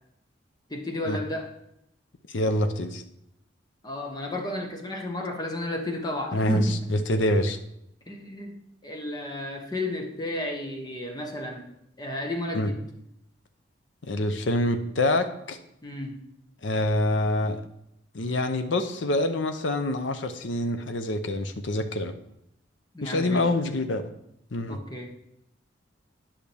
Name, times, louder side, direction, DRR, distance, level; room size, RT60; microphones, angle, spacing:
voice 1, 0.7-1.5 3.8-6.8 8.1-8.5 8.8-11.7 12.0-12.8 15.8-16.2 22.9-23.5 24.7-25.1, left 1 dB, 20° left, 2 dB, 1.0 m, -32 dB
voice 2, 2.3-3.0 6.3-6.6 6.9-7.6 12.5-12.7 14.1-15.6 16.6-17.6 18.1-22.1 23.0-24.0 24.5-24.8, left 1 dB, 80° left, 7 dB, 0.7 m, -26 dB
10.5 x 5.8 x 3.4 m, 0.77 s
head